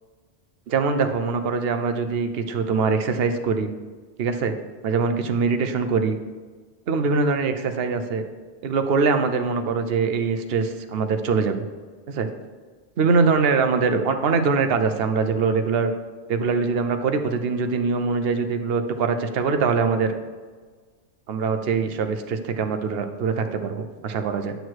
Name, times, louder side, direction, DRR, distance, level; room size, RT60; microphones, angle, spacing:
voice 1, 0.7-3.7 4.2-4.5 4.8-6.2 6.9-8.2 8.6-11.6 12.1-12.3 13.0-15.9 16.3-20.1 21.3-24.6, right 5 dB, 65° right, 7 dB, 0.9 m, -23 dB
9.3 x 6.4 x 4.6 m, 1.5 s
omnidirectional pair, 1.1 m